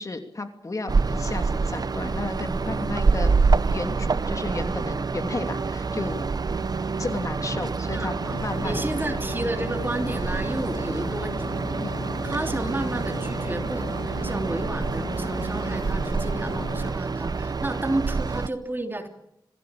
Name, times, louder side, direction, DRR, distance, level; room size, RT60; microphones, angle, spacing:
voice 1, 0.0-6.3 7.0-9.2 11.8-12.0, left 2 dB, 40° left, 6 dB, 2.8 m, -33 dB
sound 1, 0.9-18.5, right 4 dB, 50° right, 0.8 m, -27 dB
voice 2, 7.9-11.7 12.2-19.1, right 1 dB, 25° right, 5 dB, 3.1 m, -32 dB
sound 2, 8.2-16.9, left 5 dB, 85° left, 1.7 m, -36 dB
26.0 x 17.5 x 8.7 m, 0.81 s
wide cardioid pair, 100°, 8 cm